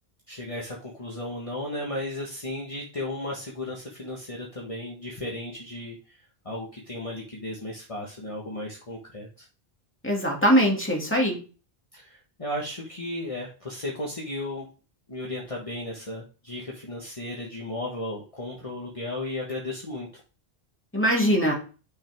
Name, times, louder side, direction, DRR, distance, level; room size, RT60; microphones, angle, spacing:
voice 1, 0.3-9.3 11.9-14.7 15.1-20.2, left 1 dB, 30° left, -2 dB, 1.5 m, -35 dB
voice 2, 10.0-11.4 20.9-21.5, equal, 10° left, -1 dB, 2.3 m, -21 dB
8.3 x 6.3 x 3.5 m, 0.35 s
omnidirectional pair, 1.1 m